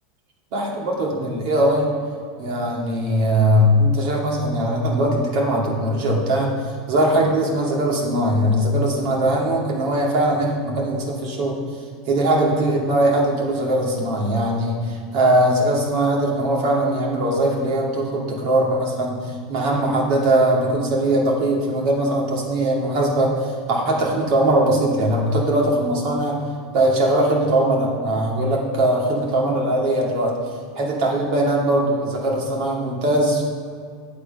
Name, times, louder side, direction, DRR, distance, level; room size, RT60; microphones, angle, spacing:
voice 1, 0.5-1.9 2.4-6.5 6.9-11.6 12.1-26.4 26.7-30.3 30.7-33.4, right 1 dB, 50° right, -3 dB, 2.4 m, -20 dB
9.7 x 6.8 x 5.4 m, 2.2 s
supercardioid pair, 160°, 0 cm